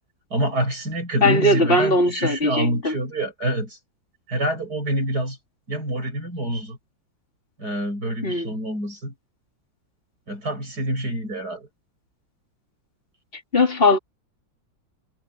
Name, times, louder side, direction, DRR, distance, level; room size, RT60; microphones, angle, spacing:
voice 1, 0.3-3.8 4.3-5.4 5.7-6.8 7.6-9.1 10.3-11.7, right 1 dB, 55° right, 8.0 m, -26 dB
voice 2, 1.2-3.0 8.2-8.6 13.3-14.0, left 2 dB, 30° left, 4.1 m, -20 dB
omnidirectional pair, 2.1 m